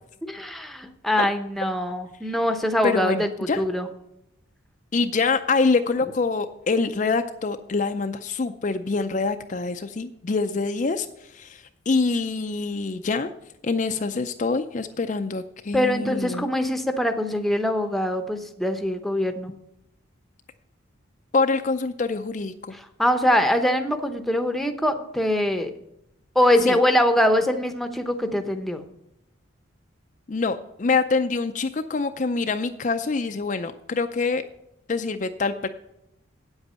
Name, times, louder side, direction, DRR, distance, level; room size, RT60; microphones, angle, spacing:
voice 1, 0.2-3.9 15.7-19.5 22.7-25.7 26.3-28.8, left 1 dB, ahead, 6 dB, 0.7 m, -23 dB
voice 2, 2.8-3.7 4.9-13.3 13.6-16.5 21.3-22.7 26.6-26.8 30.3-34.4 34.9-35.7, left 4 dB, 40° left, 7 dB, 0.4 m, -25 dB
8.8 x 8.0 x 5.5 m, 0.83 s
head